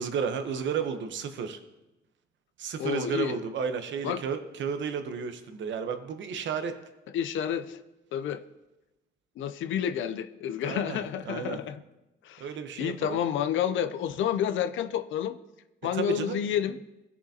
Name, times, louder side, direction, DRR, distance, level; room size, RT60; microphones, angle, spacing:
voice 1, 0.0-1.6 2.6-6.8 10.6-11.0 11.3-11.6 12.4-13.2 15.9-16.4, right 6 dB, 70° right, 8 dB, 0.9 m, -32 dB
voice 2, 2.8-3.3 4.0-4.2 7.1-7.8 8.1-8.4 9.4-11.8 12.2-12.5 12.8-15.4 15.8-16.8, left 9 dB, 75° left, 10 dB, 0.5 m, -29 dB
16.0 x 6.9 x 2.8 m, 1.0 s
cardioid pair, 90°, 20 cm